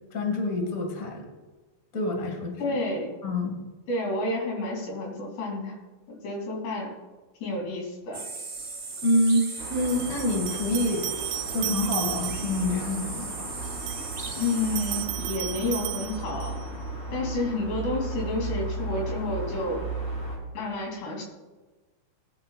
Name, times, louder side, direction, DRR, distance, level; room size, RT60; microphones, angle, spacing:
voice 1, 0.1-1.3 1.9-2.8 3.2-3.6 9.0-11.1 11.5-13.5, left 1 dB, 40° left, 2 dB, 1.1 m, -27 dB
voice 2, 2.6-3.1 3.9-5.8 6.1-6.9 7.4-8.2 14.4-16.6 17.1-19.8 20.6-21.2, left 2 dB, 70° left, 0 dB, 5.2 m, -30 dB
sound 1, 8.1-15.0, right 4 dB, 30° right, 1.2 m, -37 dB
sound 2, 8.6-8.7 9.9-12.7 13.6-16.7, right 14 dB, 90° right, 2.2 m, -35 dB
sound 3, 9.6-20.4, right 3 dB, 15° left, 2.9 m, -35 dB
20.5 x 11.5 x 2.5 m, 1.3 s
omnidirectional pair, 5.1 m